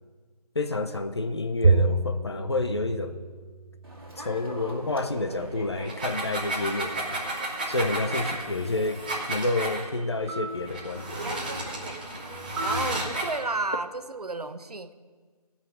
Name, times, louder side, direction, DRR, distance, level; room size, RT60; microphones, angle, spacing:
voice 1, 0.5-3.2 4.2-7.2 7.7-9.0 9.3-11.2, left 2 dB, 40° left, 8 dB, 0.7 m, -29 dB
Bowed string instrument, 1.6-4.2, right 3 dB, 55° right, 0.4 m, -26 dB
Human voice / Subway metro underground, 3.8-13.3, right 2 dB, 35° right, 2.3 m, -40 dB
sound 1, 5.8-9.8 10.7-13.4, right 2 dB, 15° right, 0.9 m, -33 dB
voice 2, 12.6-14.9, right 3 dB, 70° right, 11 dB, 0.8 m, -32 dB
14.5 x 5.7 x 7.7 m, 1.5 s
figure-of-eight pair, 165°, 21 cm